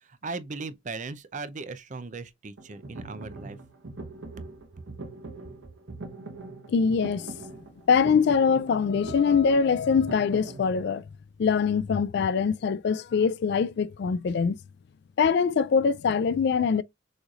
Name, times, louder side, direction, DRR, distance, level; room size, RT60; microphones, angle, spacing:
voice 1, 0.0-3.6, right 3 dB, 40° right, 0.6 m, -38 dB
sound 1, 2.6-10.7, right 2 dB, 70° right, 1.0 m, -42 dB
voice 2, 6.7-7.3 7.9-11.0 11.4-14.6 15.2-16.8, left 6 dB, 60° left, 0.3 m, -23 dB
6.4 x 3.1 x 2.4 m
head